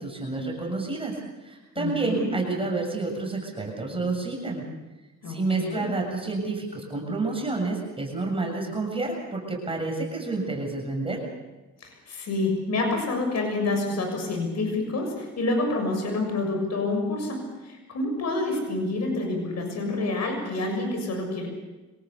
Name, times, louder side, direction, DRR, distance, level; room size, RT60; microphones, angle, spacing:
voice 1, 0.0-4.6 5.3-11.2, right 3 dB, 20° right, 0 dB, 7.2 m, -29 dB
voice 2, 1.7-2.3 5.2-5.9 11.8-21.5, left 2 dB, 60° left, 4 dB, 6.8 m, -28 dB
25.5 x 18.5 x 7.1 m, 1.1 s
cardioid pair, 90°, 30 cm